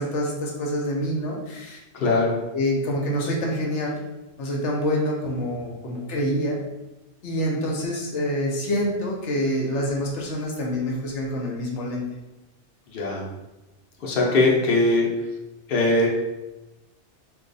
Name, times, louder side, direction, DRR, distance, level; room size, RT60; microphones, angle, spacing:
voice 1, 0.0-1.8 2.5-4.0 4.4-6.6 7.2-12.0, equal, 85° left, -2 dB, 1.0 m, -26 dB
voice 2, 1.9-2.4 12.9-13.2 14.0-15.1 15.7-16.1, left 2 dB, 60° left, -2 dB, 0.9 m, -20 dB
2.7 x 2.3 x 3.9 m, 1.0 s
omnidirectional pair, 1.2 m